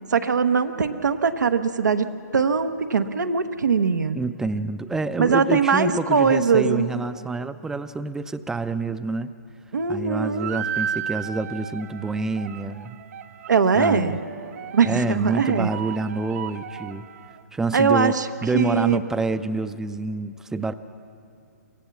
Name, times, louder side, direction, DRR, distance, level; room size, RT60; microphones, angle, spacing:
voice 1, 0.1-4.2 5.2-6.9 9.7-10.5 13.5-14.1 14.7-15.7 17.7-18.3 18.5-19.0, right 5 dB, 90° right, 7 dB, 1.0 m, -21 dB
voice 2, 4.1-9.3 9.9-13.0 13.8-14.2 14.8-17.1 17.5-18.1 18.4-20.7, right 3 dB, 5° right, 13 dB, 0.5 m, -27 dB
sound 1, 10.3-17.4, right 8 dB, 55° right, 0.9 m, -35 dB
24.5 x 16.0 x 7.1 m, 2.5 s
hypercardioid pair, 140°, 9 cm